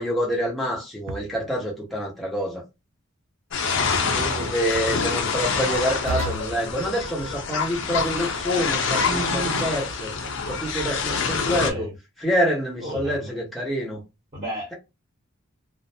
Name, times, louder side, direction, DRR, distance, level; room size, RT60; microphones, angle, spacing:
voice 1, 0.0-2.6 4.2-10.1 10.5-11.9 12.2-14.0, equal, ahead, 0.8 m, -27 dB
sound 1, 1.1-1.6 4.1-4.6 6.1-6.6 9.1-9.8, right 3 dB, 65° right, 0.4 m, -31 dB
sound 2, 3.5-11.7, left 5 dB, 60° left, 0.5 m, -26 dB
voice 2, 3.6-5.3 11.5-11.9 12.8-13.4 14.3-14.7, equal, 30° right, 1.0 m, -35 dB
2.5 x 2.0 x 2.6 m
head